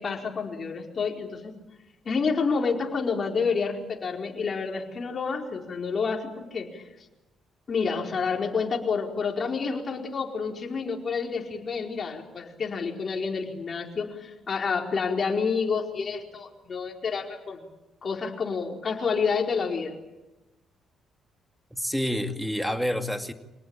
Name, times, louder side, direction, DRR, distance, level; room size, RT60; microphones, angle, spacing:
voice 1, 0.0-1.5 2.0-6.8 7.7-17.6 18.0-19.9, left 5 dB, 45° left, 1 dB, 4.6 m, -29 dB
voice 2, 21.7-23.3, equal, ahead, 6 dB, 2.4 m, -28 dB
26.5 x 18.5 x 9.0 m, 1.0 s
cardioid pair, 90°, 0 cm